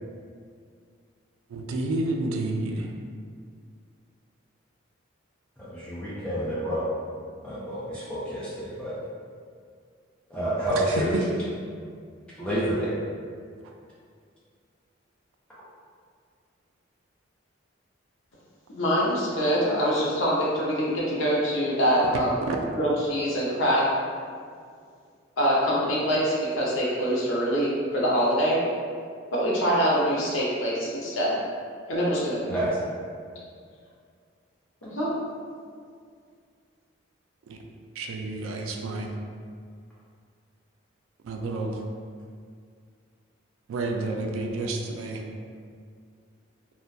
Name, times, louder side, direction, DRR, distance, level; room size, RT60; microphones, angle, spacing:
voice 1, 1.5-2.9 22.5-22.6 37.5-37.6 38.0-39.1 41.2-41.8 43.7-45.2, right 2 dB, 85° right, 3 dB, 0.3 m, -30 dB
voice 2, 5.6-6.9 7.4-9.0 10.3-11.1 12.4-12.9 32.5-32.8, right 1 dB, 5° left, -10 dB, 0.5 m, -28 dB
voice 3, 18.7-22.3 22.7-23.8 25.4-28.6 29.3-31.4 31.9-32.4 34.8-35.1, equal, 80° left, -6 dB, 0.6 m, -24 dB
2.2 x 2.1 x 2.6 m, 2.1 s
head